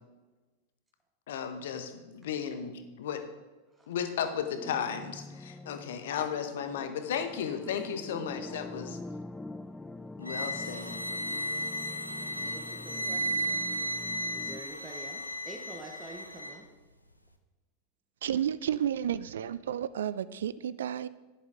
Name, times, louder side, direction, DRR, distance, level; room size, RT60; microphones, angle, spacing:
voice 1, 1.3-3.2 3.9-9.0 10.2-11.0, left 8 dB, 55° left, 9 dB, 1.1 m, -35 dB
sound 1, 4.5-14.6, left 2 dB, 5° left, 0.4 m, -45 dB
sound 2, 10.2-16.6, equal, 90° left, 0.7 m, -35 dB
voice 2, 12.4-13.5 14.3-16.7, right 2 dB, 15° right, 1 dB, 1.2 m, -47 dB
voice 3, 18.2-21.1, right 9 dB, 60° right, 17 dB, 0.4 m, -31 dB
11.0 x 11.0 x 3.6 m, 1.2 s
figure-of-eight pair, 90°, 0 cm